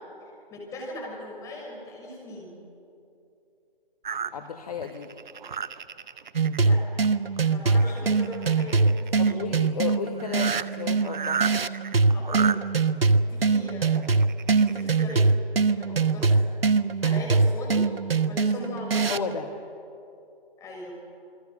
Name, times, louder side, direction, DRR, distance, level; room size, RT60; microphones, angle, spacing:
voice 1, 0.5-2.5 6.6-6.8 7.4-9.5 12.1-12.6 13.0-14.2 14.6-15.3 15.7-16.4 17.0-17.8 18.3-19.4 20.6-20.9, left 2 dB, 10° left, -1 dB, 5.9 m, -39 dB
sound 1, 4.0-6.6 7.0-7.4 7.7-9.3 9.9-10.0 10.2-12.6 13.6-15.1 15.7-15.8 16.2-16.3, right 6 dB, 50° right, 1.0 m, -33 dB
voice 2, 4.3-5.1 9.2-11.4 19.1-19.5, left 7 dB, 40° left, 6 dB, 1.6 m, -33 dB
sound 2, 6.4-19.4, right 4 dB, 75° right, 1.1 m, -23 dB
28.0 x 22.0 x 6.6 m, 2.7 s
figure-of-eight pair, 145°, 29 cm